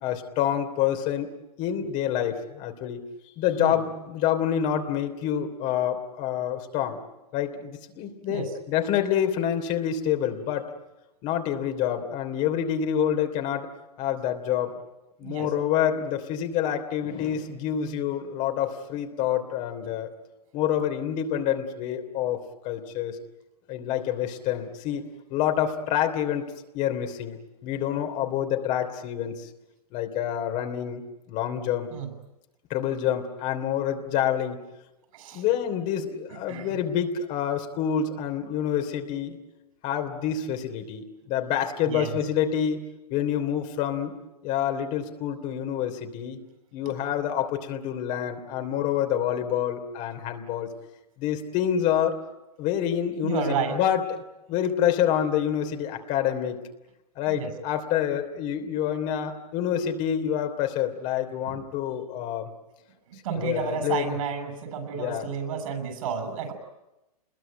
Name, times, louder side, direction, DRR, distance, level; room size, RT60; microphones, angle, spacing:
voice 1, 0.0-1.3 1.6-3.0 3.4-7.0 7.3-10.7 11.2-13.7 14.0-14.7 15.2-20.1 20.5-23.2 23.7-25.0 25.3-26.4 26.7-29.5 29.9-31.0 31.3-31.9 32.7-34.6 35.3-39.4 39.8-42.8 43.1-44.1 44.4-46.4 46.7-50.7 51.2-52.2 52.6-54.1 54.5-56.6 57.1-62.5 63.3-64.1 65.0-65.2, left 9 dB, 40° left, 5 dB, 3.1 m, -27 dB
voice 2, 35.1-35.4 36.3-36.8 41.9-42.2 46.9-47.0 53.2-53.8 57.3-57.5 61.5-61.6 63.1-66.5, right 6 dB, 60° right, 8 dB, 7.0 m, -31 dB
27.5 x 21.5 x 9.1 m, 0.97 s
hypercardioid pair, 120°, 20 cm